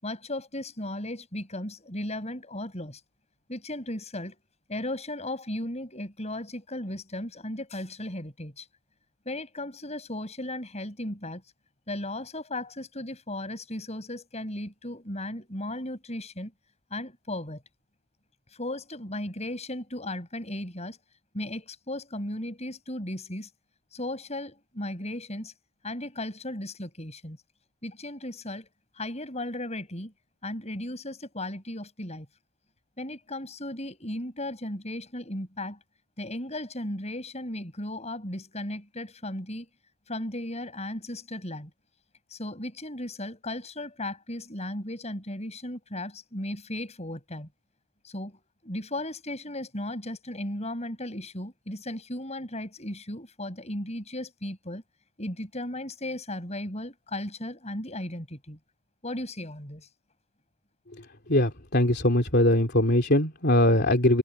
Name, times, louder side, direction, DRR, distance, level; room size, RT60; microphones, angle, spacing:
voice 1, 0.0-3.0 3.5-4.4 4.7-8.7 9.3-11.4 11.9-16.5 16.9-17.6 18.5-21.0 21.3-23.5 23.9-25.5 25.8-27.4 27.8-28.7 29.0-30.1 30.4-32.3 33.0-35.8 36.2-39.7 40.1-41.7 42.3-47.5 48.0-54.8 55.2-58.6 59.0-59.9, left 1 dB, 30° left, 7.4 m, -36 dB
voice 2, 61.3-64.2, left 1 dB, 50° left, 3.3 m, -21 dB
head